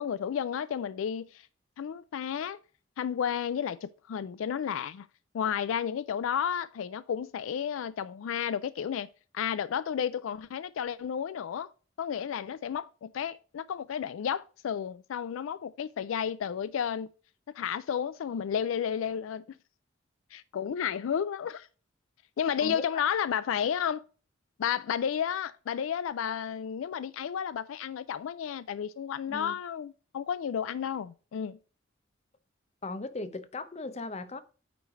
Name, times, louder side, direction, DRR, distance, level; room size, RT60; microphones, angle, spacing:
voice 1, 0.0-1.5 1.8-2.6 3.0-5.1 5.3-9.1 9.3-11.7 12.0-17.1 17.5-19.4 20.3-21.7 22.4-24.0 24.6-31.6, left 8 dB, 90° left, 0.3 m, -32 dB
voice 2, 22.6-23.2 29.3-29.5 32.8-34.4, left 3 dB, 35° left, 0.6 m, -38 dB
9.2 x 3.2 x 5.7 m
head